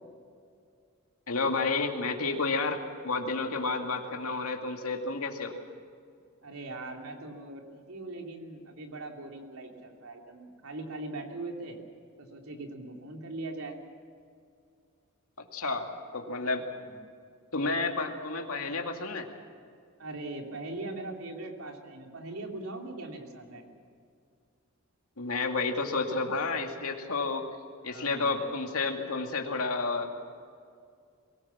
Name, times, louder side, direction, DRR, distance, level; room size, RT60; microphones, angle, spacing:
voice 1, 1.3-5.5 15.5-16.6 17.5-19.3 25.2-27.5 27.8-30.1, left 3 dB, 85° left, 3 dB, 2.3 m, -31 dB
voice 2, 6.4-11.8 12.2-13.8 16.9-17.0 20.0-23.6 27.9-28.5, right 2 dB, 80° right, 2 dB, 3.1 m, -40 dB
23.0 x 18.5 x 7.3 m, 2.3 s
head